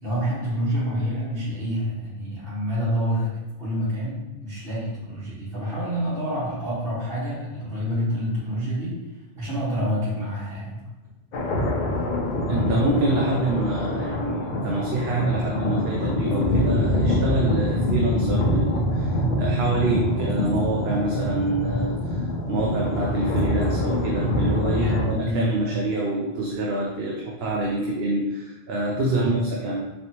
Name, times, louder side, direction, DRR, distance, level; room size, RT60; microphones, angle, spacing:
voice 1, 0.0-9.0 9.4-10.9 24.7-25.8 29.1-29.3, equal, 65° right, -8 dB, 1.7 m, -28 dB
sound 1, 11.3-25.1, left 1 dB, 55° left, 0.7 m, -25 dB
voice 2, 12.5-29.9, right 2 dB, 80° right, -2 dB, 0.9 m, -26 dB
4.0 x 3.2 x 2.9 m, 1.1 s
omnidirectional pair, 1.1 m